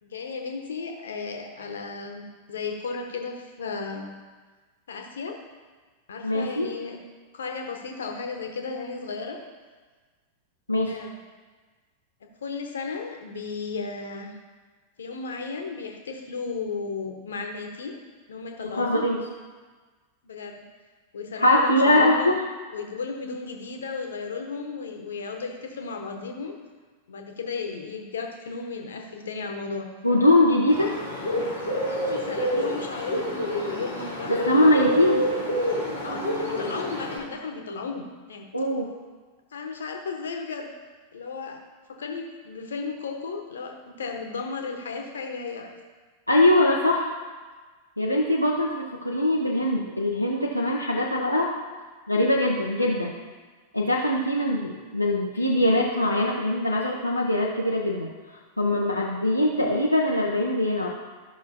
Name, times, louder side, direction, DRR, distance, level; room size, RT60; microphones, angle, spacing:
voice 1, 0.0-4.1 4.9-5.4 6.1-7.0 7.3-9.4 10.9-11.2 12.4-14.4 15.0-17.9 18.3-19.1 20.2-20.6 21.1-22.4 22.7-26.5 27.1-29.9 31.8-35.0 36.0-38.4 39.5-40.7 41.1-41.6 41.9-45.7, left 4 dB, 65° left, 3 dB, 1.2 m, -34 dB
voice 2, 6.2-6.7 10.7-11.0 18.7-19.2 21.4-22.4 30.0-31.0 34.3-35.3 38.5-38.9 46.3-47.1 48.0-51.5 52.1-53.1 53.7-58.1 58.6-60.9, left 1 dB, 85° left, -3 dB, 0.7 m, -22 dB
Bird, 30.7-37.2, equal, 85° right, 2.1 m, -28 dB
14.0 x 6.1 x 2.8 m, 1.4 s
figure-of-eight pair, 90°, 0 cm